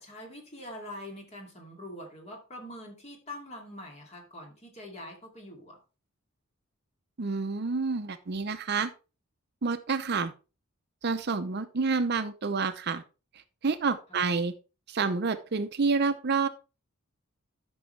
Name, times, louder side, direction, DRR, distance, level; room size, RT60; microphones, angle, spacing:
voice 1, 0.0-5.8 14.1-14.2, left 1 dB, 30° left, 1 dB, 2.5 m, -44 dB
voice 2, 7.2-8.9 9.6-10.3 11.0-13.0 13.6-14.5 14.9-16.5, right 4 dB, 50° right, 11 dB, 0.6 m, -28 dB
12.5 x 6.2 x 3.2 m, 0.32 s
head